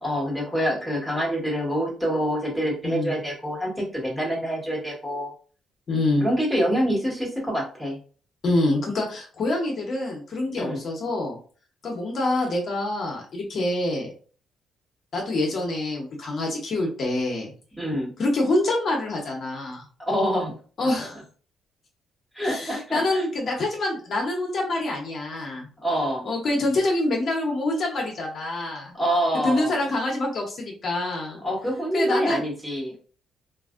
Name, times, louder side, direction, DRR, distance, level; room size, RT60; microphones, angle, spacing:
voice 1, 0.0-5.3 6.2-8.0 10.6-10.8 17.8-18.1 20.0-20.6 22.3-23.2 25.8-26.3 28.9-29.8 31.4-32.9, equal, 5° right, -4 dB, 1.5 m, -26 dB
voice 2, 5.9-6.2 8.4-11.4 11.8-14.1 15.1-17.5 18.2-19.8 20.8-21.2 22.4-25.7 26.2-29.0 29.4-31.4 31.9-32.4, left 2 dB, 55° left, -1 dB, 0.9 m, -26 dB
3.1 x 2.5 x 2.5 m, 0.40 s
cardioid pair, 90°, 0 cm